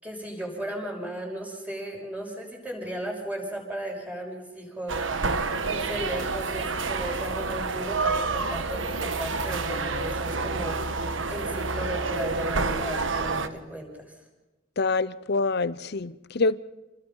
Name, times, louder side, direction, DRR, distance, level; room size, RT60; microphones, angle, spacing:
voice 1, 0.0-5.3 5.7-10.8 11.3-14.1, right 1 dB, 10° right, 5.9 m, -36 dB
sound 1, 4.9-13.5, right 3 dB, 75° right, 1.3 m, -28 dB
sound 2, 6.3-10.7, equal, 45° right, 4.6 m, -50 dB
voice 2, 14.8-16.6, left 3 dB, 60° left, 0.8 m, -26 dB
28.5 x 21.5 x 5.6 m
head